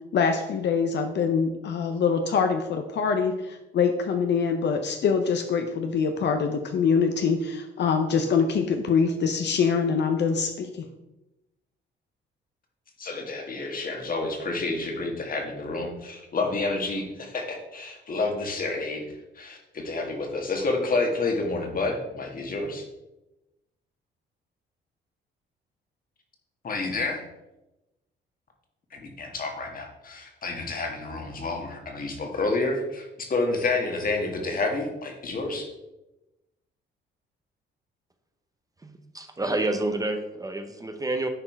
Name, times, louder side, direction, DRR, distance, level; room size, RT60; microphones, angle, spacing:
voice 1, 0.1-10.9, left 5 dB, 60° left, 6 dB, 0.7 m, -24 dB
voice 2, 13.0-19.0 19.3-22.8 26.6-27.2 28.9-35.7, left 3 dB, 45° left, 3 dB, 1.8 m, -29 dB
voice 3, 38.8-41.3, right 2 dB, 20° right, 6 dB, 0.9 m, -29 dB
9.8 x 4.4 x 4.5 m, 0.97 s
cardioid pair, 90°, 20 cm